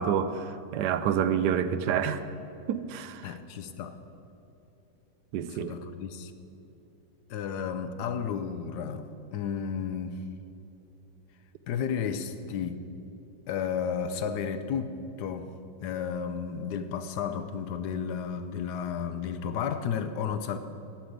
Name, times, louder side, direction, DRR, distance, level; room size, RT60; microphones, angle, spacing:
voice 1, 0.0-2.2 2.7-3.3 5.3-5.8, right 8 dB, 75° right, 1.1 m, -28 dB
voice 2, 3.2-4.0 5.5-6.3 7.3-10.2 11.7-12.8 13.5-15.5 15.8-20.6, left 7 dB, 70° left, 1.2 m, -33 dB
8.8 x 8.8 x 8.0 m
omnidirectional pair, 1.9 m